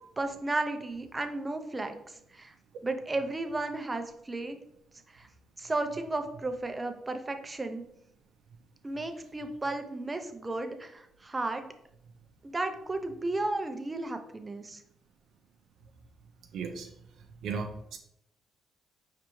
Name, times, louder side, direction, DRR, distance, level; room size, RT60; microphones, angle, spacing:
voice 1, 0.2-2.5 2.8-4.6 5.1-5.3 5.6-7.8 8.8-11.7 12.4-14.8, right 2 dB, 20° right, 7 dB, 0.5 m, -34 dB
voice 2, 16.5-16.9 17.4-18.0, right 5 dB, 75° right, 3 dB, 0.5 m, -35 dB
4.9 x 3.3 x 3.1 m, 0.76 s
cardioid pair, 90°, 0 cm